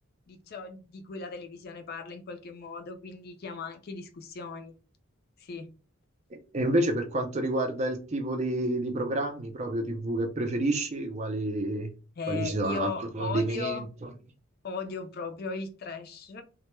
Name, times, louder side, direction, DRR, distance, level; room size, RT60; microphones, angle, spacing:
voice 1, 0.3-4.7 5.4-5.7 12.2-13.9 14.6-16.4, left 5 dB, 45° left, 0.4 m, -37 dB
voice 2, 6.3-11.9 12.3-13.9, right 1 dB, 30° right, 0.4 m, -29 dB
2.1 x 2.1 x 2.9 m
head